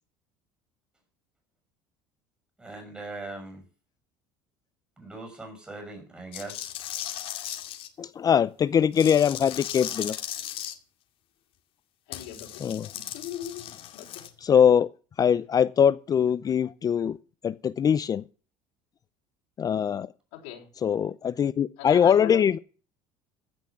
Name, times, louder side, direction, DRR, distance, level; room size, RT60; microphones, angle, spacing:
voice 1, 2.6-3.6 5.0-6.7, right 2 dB, 10° right, 5.9 m, -40 dB
sound 1, 6.3-7.9 8.9-10.7 12.1-14.3, left 12 dB, 60° left, 2.2 m, -37 dB
voice 2, 8.0-10.2 12.6-12.9 14.4-14.9 15.2-17.2 17.4-18.2 19.6-20.1 20.8-22.6, left 8 dB, 35° left, 0.6 m, -22 dB
voice 3, 12.1-12.7 12.9-13.6 13.9-14.1 20.3-20.7 21.8-22.6, left 11 dB, 80° left, 4.4 m, -38 dB
16.0 x 6.3 x 7.1 m
supercardioid pair, 90°, 11 cm